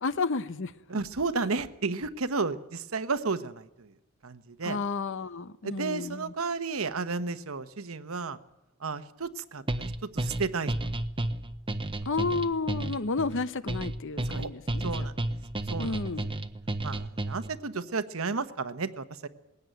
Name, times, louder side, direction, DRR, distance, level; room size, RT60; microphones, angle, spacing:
voice 1, 0.0-0.7 4.6-6.3 12.0-15.1 15.8-16.3, left 4 dB, 65° left, 0.8 m, -31 dB
voice 2, 0.9-3.9 4.2-4.8 5.6-8.4 8.8-10.9 14.2-14.5 14.8-15.2 15.7-15.9 16.8-19.3, right 4 dB, 75° right, 1.1 m, -32 dB
sound 1, 9.7-17.6, right 1 dB, 25° right, 0.8 m, -32 dB
20.5 x 16.5 x 9.3 m
head